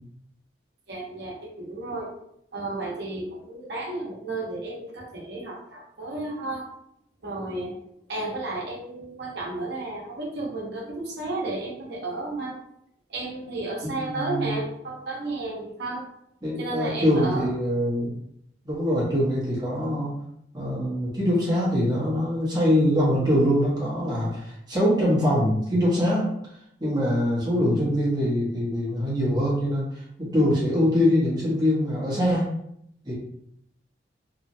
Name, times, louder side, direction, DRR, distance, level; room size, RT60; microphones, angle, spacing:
voice 1, 0.9-2.1 2.5-6.7 7.2-7.8 8.1-12.6 13.1-16.1 16.6-17.5, right 2 dB, 70° right, -3 dB, 0.9 m, -33 dB
voice 2, 13.8-14.5 16.4-18.1 18.6-20.1 20.5-26.3 26.8-29.9 30.2-32.5 33.0-33.1, equal, 20° right, -7 dB, 1.0 m, -23 dB
2.9 x 2.4 x 2.6 m, 0.75 s
head